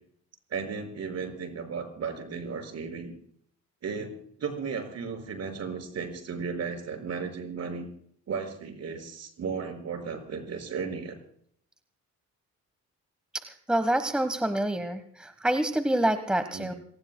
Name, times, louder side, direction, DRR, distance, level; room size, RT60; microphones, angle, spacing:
voice 1, 0.5-3.1 3.8-4.1 4.4-7.9 8.3-11.2 16.5-16.8, right 5 dB, 60° right, 5 dB, 5.6 m, -35 dB
voice 2, 13.7-16.7, right 1 dB, 5° right, 10 dB, 1.2 m, -27 dB
28.0 x 19.0 x 2.2 m, 0.63 s
cardioid pair, 90°, 30 cm